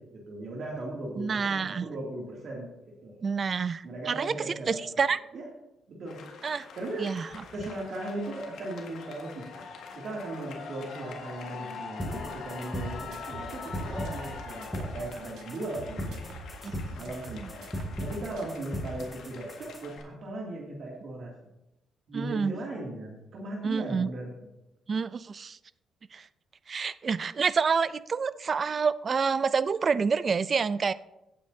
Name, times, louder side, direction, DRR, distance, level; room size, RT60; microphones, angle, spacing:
voice 1, 0.0-2.7 3.0-3.2 3.8-4.9 5.3-5.4 5.9-6.2 6.8-7.1 7.5-9.6 9.9-16.2 16.9-21.3 22.1-24.3, right 2 dB, 60° right, -3 dB, 2.6 m, -37 dB
voice 2, 1.2-1.8 3.2-5.2 6.4-6.7 7.0-7.3 16.6-16.7 17.3-17.5 22.1-22.5 23.6-24.1 24.9-25.6 26.1-26.3 26.7-30.9, right 5 dB, 40° right, 16 dB, 0.4 m, -28 dB
sound 1, 6.1-20.0, left 5 dB, 75° left, 1.7 m, -44 dB
sound 2, 12.0-20.0, equal, 10° left, 2.7 m, -38 dB
sound 3, 12.7-15.1 15.4-18.1 18.4-18.6, right 4 dB, 80° right, 1.5 m, -46 dB
16.5 x 8.5 x 2.8 m, 0.91 s
cardioid pair, 90°, 0 cm